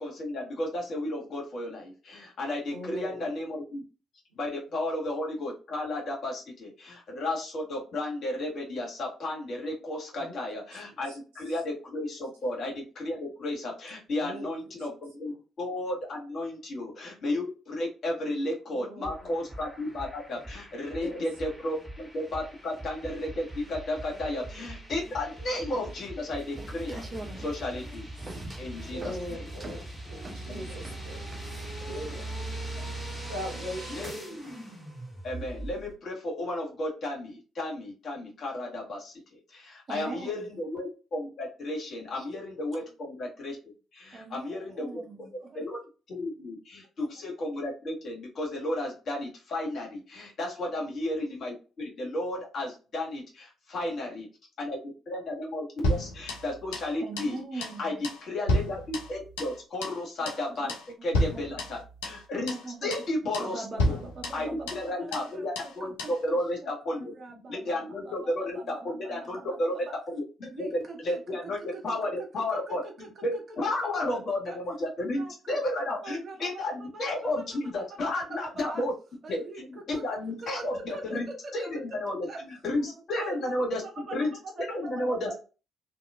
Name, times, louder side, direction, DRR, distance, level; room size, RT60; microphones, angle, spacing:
voice 1, 0.0-3.8 4.3-27.1 27.4-28.0 28.6-29.4 30.7-30.8 32.8-32.9 33.9-34.4 35.2-43.6 43.9-45.0 45.5-45.8 46.1-54.3 54.6-60.7 61.0-62.5 62.8-63.9 64.3-67.1 67.5-69.8 70.1-78.9 79.3-84.3 84.7-85.3, left 1 dB, 55° left, -2 dB, 1.6 m, -33 dB
voice 2, 2.7-3.3 10.1-10.4 11.1-11.2 11.5-11.6 14.2-14.5 18.7-19.3 21.0-21.2 24.2-24.3 27.0-27.2 28.8-31.3 31.8-32.4 33.3-34.1, equal, 85° right, 1 dB, 0.9 m, -40 dB
sound 1, 19.0-35.9, right 1 dB, ahead, 1.6 m, -41 dB
sound 2, 26.4-31.8, right 2 dB, 30° right, 0.7 m, -44 dB
voice 3, 39.9-40.5 42.1-42.3 44.1-45.7 57.0-58.0 60.5-60.7 61.3-61.6 62.5-63.1 63.4-69.6 70.5-72.1 72.5-73.9 74.4-74.6 75.0-75.6 76.0-77.6 78.6-78.8 79.2-80.0 80.4-81.7 82.3-82.4 82.8-85.4, right 3 dB, 45° right, 2 dB, 1.2 m, -43 dB
sound 3, 55.8-56.9 57.2-57.3 57.6-57.8 58.0-59.6 59.8-60.0 60.2-60.4 60.7-60.9 61.1-62.2 62.5-62.6 62.9-63.1 63.3-63.5 63.8-64.9 65.1-65.3 65.5-65.7 66.0-66.2, left 1 dB, 80° left, 0.6 m, -31 dB
2.9 x 2.8 x 2.4 m, 0.33 s
hypercardioid pair, 45°, 0 cm